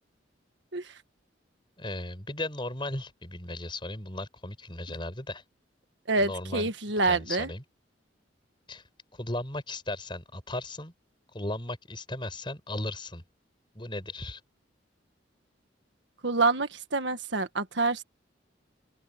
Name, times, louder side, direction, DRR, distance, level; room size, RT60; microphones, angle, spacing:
voice 1, 1.8-5.4 6.2-6.7 7.0-7.6 8.7-8.8 9.1-10.9 11.3-13.2 13.7-14.4, left 1 dB, 25° left, 5.2 m, -36 dB
voice 2, 6.1-7.5 16.2-18.0, right 3 dB, 70° right, 1.5 m, -27 dB
open air
head